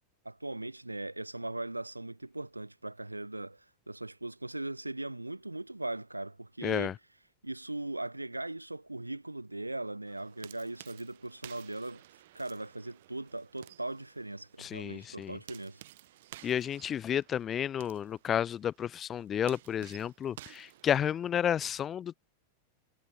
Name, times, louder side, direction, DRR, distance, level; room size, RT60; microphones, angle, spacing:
voice 1, 0.3-6.9 7.4-12.0 12.3-15.8, right 2 dB, 85° right, 3.3 m, -39 dB
voice 2, 6.6-6.9 14.6-15.4 16.4-22.1, left 9 dB, 25° left, 0.5 m, -31 dB
sound 1, 10.1-21.5, right 15 dB, 55° right, 7.0 m, -55 dB
figure-of-eight pair, 90°, 0 cm